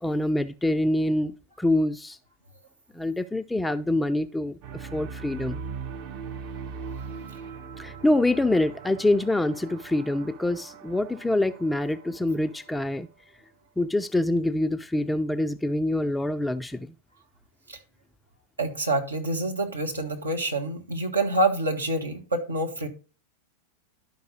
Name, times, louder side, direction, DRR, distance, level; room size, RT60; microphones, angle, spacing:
voice 1, 0.0-2.2 2.9-5.6 7.8-13.1 13.8-16.9, left 1 dB, 5° left, 0.4 m, -25 dB
sound 1, 4.6-12.8, right 5 dB, 45° right, 0.8 m, -40 dB
voice 2, 18.6-22.9, right 2 dB, 80° right, 1.4 m, -27 dB
11.5 x 5.3 x 3.8 m
figure-of-eight pair, 90°, 0 cm